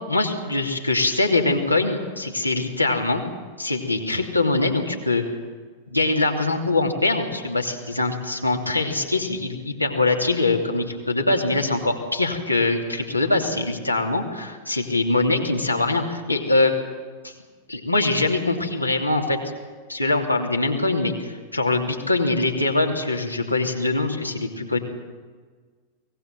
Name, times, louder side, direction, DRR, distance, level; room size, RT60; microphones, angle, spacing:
voice 1, 0.1-3.2 3.6-5.2 5.9-16.8 17.2-17.3 17.7-19.4 19.9-24.8, left 2 dB, 85° left, 1 dB, 2.9 m, -23 dB
23.5 x 18.5 x 7.5 m, 1.5 s
figure-of-eight pair, 90°, 0 cm